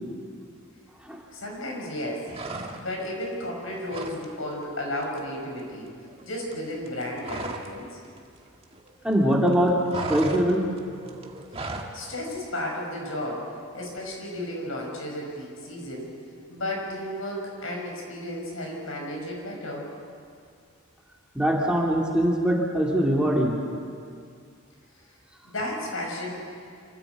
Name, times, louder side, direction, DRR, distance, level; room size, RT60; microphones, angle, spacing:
voice 1, 1.3-2.3 2.8-5.9 6.2-8.0 11.9-13.5 13.7-16.1 16.5-19.9 25.4-26.3, left 1 dB, 80° left, -1 dB, 5.8 m, -33 dB
sound 1, 2.3-3.1 3.4-4.2 4.5-4.7 5.0-7.8 8.0-9.1 9.4-12.0, right 3 dB, 30° right, 1.6 m, -36 dB
voice 2, 9.0-9.8 10.1-10.7 21.3-23.6, equal, 5° right, -3 dB, 2.6 m, -22 dB
26.5 x 15.0 x 8.2 m, 2.3 s
head